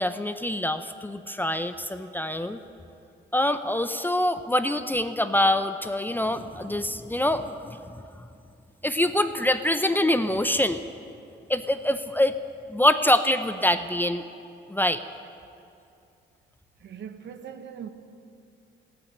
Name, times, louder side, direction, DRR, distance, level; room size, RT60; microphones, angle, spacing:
voice 1, 0.0-2.6 3.3-7.8 8.8-10.8 11.5-12.4 12.7-14.2 14.7-15.0, left 1 dB, 10° left, 9 dB, 0.6 m, -25 dB
voice 2, 16.8-17.9, right 8 dB, 65° right, 8 dB, 1.2 m, -40 dB
14.5 x 8.9 x 10.0 m, 2.5 s
cardioid pair, 90°, 20 cm